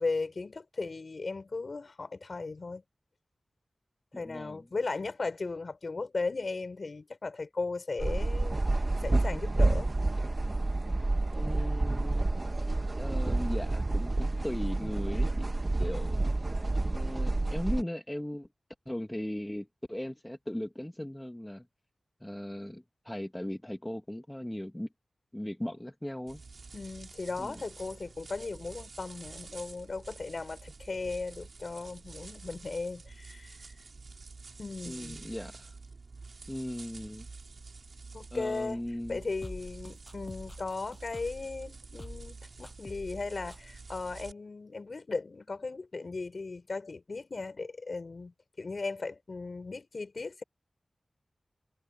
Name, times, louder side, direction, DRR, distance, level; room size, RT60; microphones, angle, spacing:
voice 1, 0.0-2.8 4.2-8.6 9.0-10.0 26.7-33.6 34.6-35.2 38.1-38.8 39.1-50.4, left 3 dB, 60° left, 5.4 m, -37 dB
voice 2, 4.1-4.7 11.4-12.3 13.0-16.2 16.9-18.5 18.9-21.7 22.2-24.9 25.3-26.4 27.4-27.6 34.9-35.7 36.5-37.3 38.3-39.2, left 1 dB, 10° left, 2.4 m, -38 dB
sound 1, 8.0-17.8, right 2 dB, 40° right, 2.0 m, -29 dB
sound 2, 26.3-44.3, right 4 dB, 70° right, 2.7 m, -48 dB
sound 3, 39.4-41.5 42.0-42.4 42.6-43.2 43.5-43.6, left 2 dB, 40° left, 7.5 m, -47 dB
wide cardioid pair, 55°, 0 cm